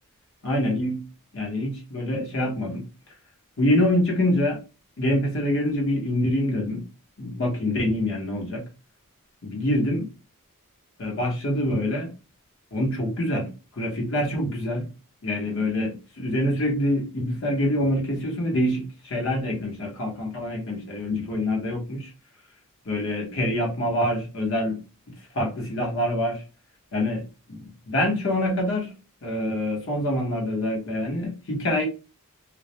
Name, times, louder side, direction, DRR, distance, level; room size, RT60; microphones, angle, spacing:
voice 1, 0.4-1.0 1.3-2.8 3.6-4.6 5.0-6.8 7.2-8.6 9.4-10.1 11.0-12.1 12.7-14.9 15.2-22.1 22.8-24.8 25.3-26.4 26.9-28.9 29.2-31.9, left 1 dB, 60° left, 0.8 m, -25 dB
2.2 x 2.0 x 2.8 m
head